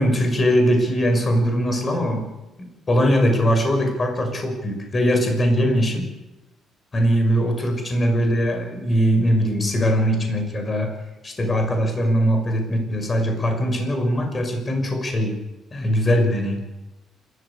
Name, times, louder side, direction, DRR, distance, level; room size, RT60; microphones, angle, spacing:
voice 1, 0.0-2.3 2.6-6.1 6.9-10.9 11.2-15.3 15.7-16.6, equal, 30° left, 4 dB, 6.2 m, -21 dB
27.5 x 14.5 x 8.5 m, 1.0 s
cardioid pair, 110°, 0 cm